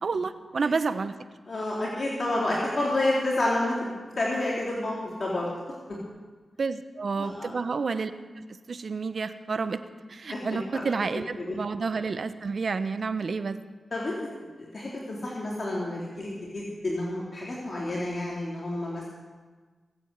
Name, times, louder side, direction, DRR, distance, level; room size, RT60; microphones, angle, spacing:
voice 1, 0.0-1.1 6.6-8.1 8.4-9.8 10.1-13.6, right 4 dB, 65° right, 11 dB, 1.0 m, -30 dB
voice 2, 1.5-5.5 7.2-7.5 10.3-10.9 11.4-11.6 13.9-14.2 14.6-19.1, left 1 dB, 50° left, -5 dB, 3.5 m, -29 dB
20.0 x 8.9 x 8.2 m, 1.4 s
cardioid pair, 60°, 0 cm